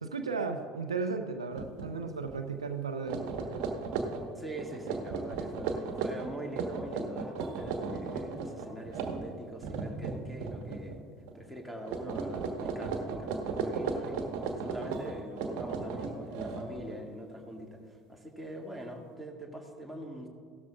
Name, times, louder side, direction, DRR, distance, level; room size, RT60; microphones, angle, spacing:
voice 1, 0.0-3.6, right 4 dB, 85° right, 7 dB, 0.6 m, -35 dB
sound 1, 1.5-1.9 2.2-2.4 2.9-11.0 11.3-11.6 11.9-17.0, right 4 dB, 60° right, 1.2 m, -36 dB
voice 2, 4.3-11.0 11.3-20.3, equal, ahead, -1 dB, 2.1 m, -43 dB
17.0 x 13.0 x 2.4 m, 2.3 s
figure-of-eight pair, 65°, 3 cm